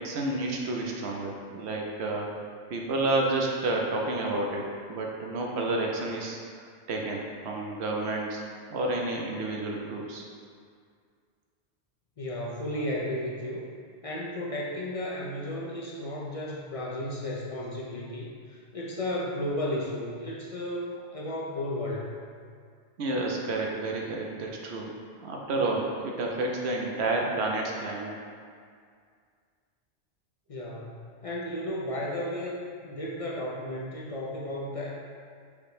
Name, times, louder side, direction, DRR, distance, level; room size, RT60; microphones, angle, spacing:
voice 1, 0.0-2.4 2.7-6.4 6.9-8.4 8.7-10.2 23.0-28.2, right 2 dB, 70° right, 0 dB, 0.9 m, -30 dB
voice 2, 12.2-13.6 14.0-22.1 30.5-32.6 32.8-34.9, left 1 dB, 50° left, -4 dB, 0.4 m, -34 dB
5.0 x 2.1 x 4.8 m, 2.1 s
omnidirectional pair, 1.2 m